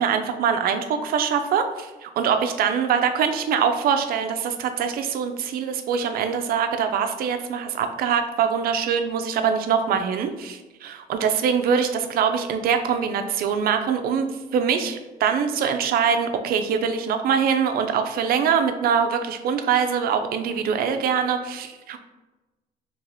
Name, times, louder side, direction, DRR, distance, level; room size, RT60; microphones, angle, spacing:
voice 1, 0.0-14.3 14.5-22.0, right 7 dB, 60° right, 8 dB, 0.4 m, -23 dB
3.0 x 2.8 x 3.9 m, 1.1 s
cardioid pair, 110°, 17 cm